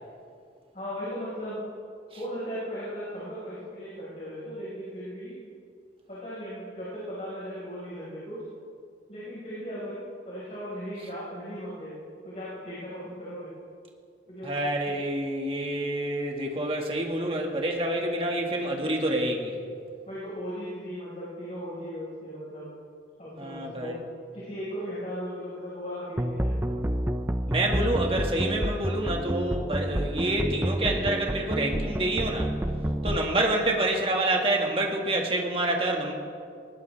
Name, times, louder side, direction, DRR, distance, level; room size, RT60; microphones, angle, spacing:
voice 1, 0.7-1.6 2.1-5.4 6.1-8.4 9.1-10.0 10.2-11.9 12.2-13.5 14.3-14.9 20.1-22.7 23.2-24.0 24.3-26.9 33.3-33.4, equal, 35° left, -9 dB, 5.2 m, -37 dB
voice 2, 14.4-19.5 23.4-23.9 27.5-32.5 33.0-36.1, right 1 dB, 30° right, 0 dB, 2.1 m, -27 dB
sound 1, 26.2-33.2, right 1 dB, 10° right, 0.5 m, -29 dB
20.0 x 20.0 x 3.6 m, 2.2 s
head